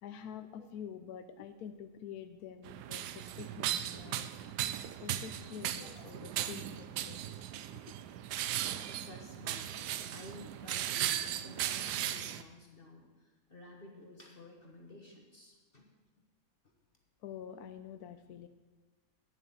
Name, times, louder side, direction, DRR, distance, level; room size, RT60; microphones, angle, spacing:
voice 1, 0.0-4.6 5.0-8.1 8.4-8.6 17.2-18.5, left 8 dB, 75° left, 9 dB, 1.0 m, -48 dB
sound 1, 2.7-12.4, right 11 dB, 85° right, 1.2 m, -37 dB
voice 2, 9.0-15.9, left 2 dB, 35° left, 0 dB, 1.4 m, -52 dB
9.3 x 8.1 x 7.1 m, 1.2 s
omnidirectional pair, 1.7 m